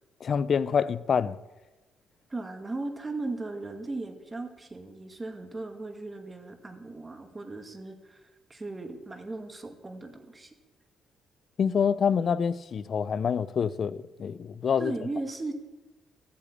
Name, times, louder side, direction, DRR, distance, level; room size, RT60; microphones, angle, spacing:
voice 1, 0.2-1.4 11.6-14.9, left 7 dB, 50° left, 0.6 m, -26 dB
voice 2, 2.3-10.5 14.8-15.5, right 2 dB, 20° right, 2.1 m, -37 dB
13.5 x 8.5 x 8.6 m
cardioid pair, 90°, 0 cm